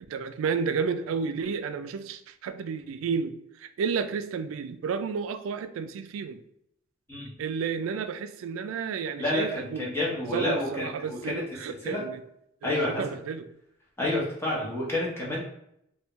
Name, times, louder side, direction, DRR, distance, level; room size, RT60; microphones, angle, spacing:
voice 1, 0.1-6.4 7.4-12.2 12.7-13.5, right 6 dB, 90° right, 10 dB, 0.3 m, -32 dB
voice 2, 9.2-11.4 11.8-12.0 12.6-13.0 14.0-15.4, left 1 dB, 15° left, -5 dB, 1.0 m, -29 dB
3.4 x 2.3 x 3.0 m, 0.76 s
head